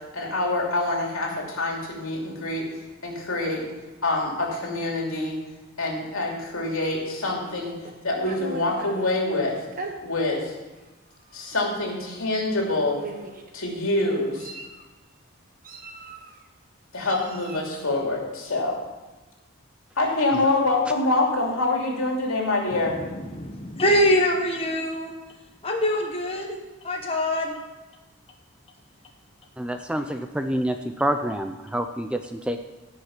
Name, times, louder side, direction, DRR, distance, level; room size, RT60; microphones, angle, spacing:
voice 1, 0.1-2.7 3.0-3.6 4.0-5.4 5.8-7.8 8.0-9.6 10.0-10.5 11.3-13.0 13.5-14.5 16.9-18.7 20.0-23.0, left 2 dB, 75° left, -1 dB, 2.8 m, -25 dB
Meow, 7.4-9.1 9.7-9.9 10.8-10.9 11.3-11.5 12.5-12.6 13.0-13.5 14.1-14.8 15.6-16.4 17.0-17.7, right 3 dB, 40° right, 1.1 m, -39 dB
voice 2, 22.7-25.1 25.6-26.6 26.8-27.6, equal, 25° left, 0 dB, 1.1 m, -24 dB
voice 3, 29.6-32.6, right 1 dB, 5° right, 6 dB, 0.4 m, -27 dB
16.0 x 5.5 x 5.8 m, 1.2 s
head